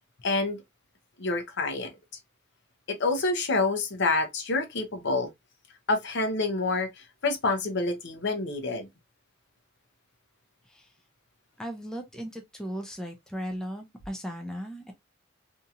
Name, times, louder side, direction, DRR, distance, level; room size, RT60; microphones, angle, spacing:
voice 1, 0.2-0.6 1.2-1.9 2.9-5.3 5.9-6.9 7.2-8.9, left 3 dB, 60° left, 0.7 m, -27 dB
voice 2, 11.6-14.9, equal, 5° left, 0.4 m, -37 dB
2.7 x 2.7 x 2.3 m
head